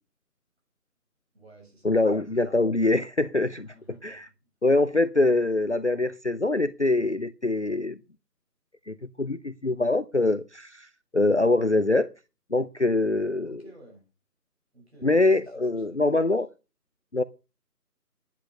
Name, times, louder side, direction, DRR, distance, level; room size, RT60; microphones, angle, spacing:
voice 1, 1.3-2.0 3.6-4.3 13.4-14.1 14.7-16.3, right 1 dB, 40° right, 6.4 m, -53 dB
voice 2, 1.8-3.7 4.0-4.3 4.6-8.0 8.9-10.9 11.1-12.1 12.5-13.6 15.0-16.5 17.1-17.2, left 2 dB, 45° left, 0.6 m, -24 dB
10.5 x 10.5 x 6.6 m
figure-of-eight pair, 165°, 48 cm